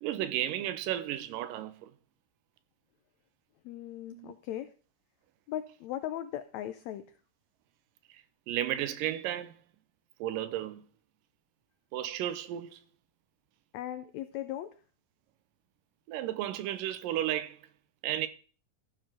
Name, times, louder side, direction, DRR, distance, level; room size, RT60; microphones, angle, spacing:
voice 1, 0.0-1.9 4.1-4.3 8.1-9.6 10.2-10.9 11.9-12.8 16.1-17.7 18.0-18.3, right 12 dB, 85° right, 2.4 m, -33 dB
voice 2, 3.6-4.7 5.5-7.0 13.7-14.7, left 12 dB, 85° left, 1.6 m, -38 dB
13.5 x 4.7 x 6.1 m
omnidirectional pair, 3.9 m